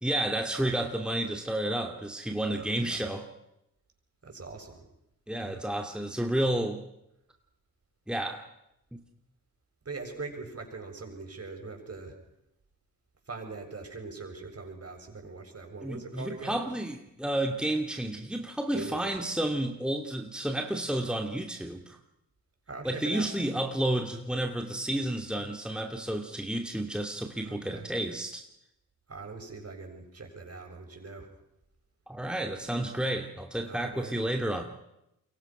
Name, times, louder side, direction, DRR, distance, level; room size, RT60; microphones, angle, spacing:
voice 1, 0.0-3.3 5.3-6.8 8.1-8.5 8.9-9.0 15.8-22.0 22.8-28.4 32.1-34.6, right 1 dB, ahead, 4 dB, 2.7 m, -31 dB
voice 2, 2.6-3.0 4.2-4.9 5.4-5.6 9.8-12.2 13.3-16.6 18.7-19.2 22.7-23.3 27.4-27.9 29.1-31.3 33.6-34.2, right 4 dB, 40° right, 4 dB, 7.6 m, -42 dB
28.0 x 23.5 x 6.2 m, 0.86 s
supercardioid pair, 45°, 37 cm